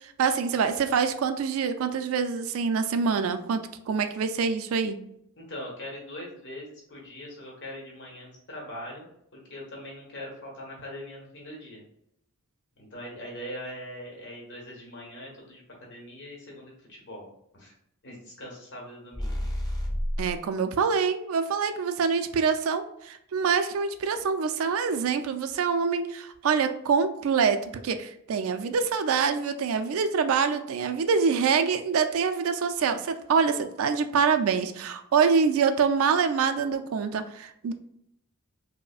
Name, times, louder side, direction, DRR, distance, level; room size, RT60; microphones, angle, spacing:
voice 1, 0.0-5.0 20.2-37.7, right 6 dB, 70° right, 9 dB, 0.3 m, -25 dB
voice 2, 5.4-9.1 9.3-11.8 12.8-17.3 17.5-17.7 18.0-19.4, left 1 dB, 55° left, -2 dB, 1.2 m, -41 dB
sound 1, 19.1-20.4, equal, 15° left, 0.6 m, -30 dB
4.8 x 2.1 x 2.3 m, 0.77 s
head